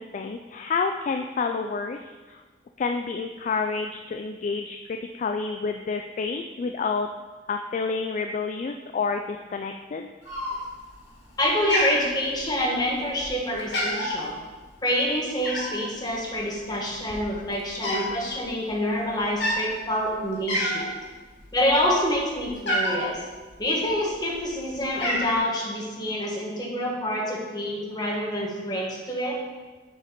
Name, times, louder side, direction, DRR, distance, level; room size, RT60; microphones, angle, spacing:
voice 1, 0.0-2.4 2.8-7.1 7.5-10.1, left 4 dB, 45° left, 5 dB, 0.3 m, -29 dB
Cat, 10.2-10.9 11.2-11.4 11.7-12.7 13.2-13.3 13.6-14.2 15.4-15.8 16.6-16.7 17.0-18.1 18.4-18.6 19.3-19.6 20.1-20.2 20.5-21.0 21.4-23.1 23.9-24.5 24.7-25.4, equal, 80° left, 2.1 m, -28 dB
voice 2, 11.4-14.4 14.8-21.0 21.5-23.2 23.6-29.4, equal, 25° left, -2 dB, 1.4 m, -27 dB
7.6 x 4.2 x 5.1 m, 1.3 s
head